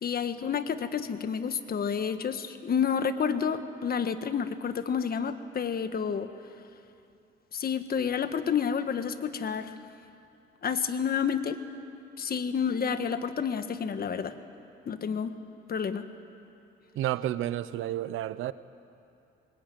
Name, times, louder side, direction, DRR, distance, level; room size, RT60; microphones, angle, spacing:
voice 1, 0.0-6.3 7.5-9.7 10.6-11.6 12.2-14.3 14.8-15.4 15.7-16.0, left 7 dB, 50° left, 10 dB, 1.5 m, -29 dB
voice 2, 16.9-18.5, right 13 dB, 85° right, 15 dB, 0.8 m, -31 dB
24.5 x 21.5 x 9.3 m, 2.7 s
cardioid pair, 90°, 20 cm